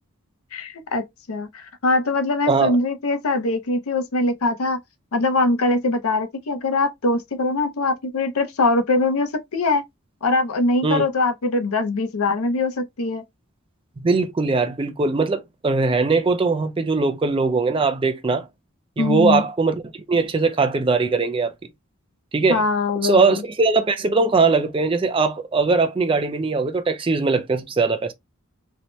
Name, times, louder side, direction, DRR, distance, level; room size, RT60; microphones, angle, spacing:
voice 1, 0.5-4.8 5.1-9.8 10.2-13.2 19.0-19.5 22.5-23.4, left 2 dB, 80° left, 0.6 m, -22 dB
voice 2, 14.0-18.5 19.0-19.7 20.1-21.5 22.3-22.6 23.0-28.1, right 4 dB, 25° right, 0.4 m, -20 dB
2.7 x 2.1 x 2.9 m
head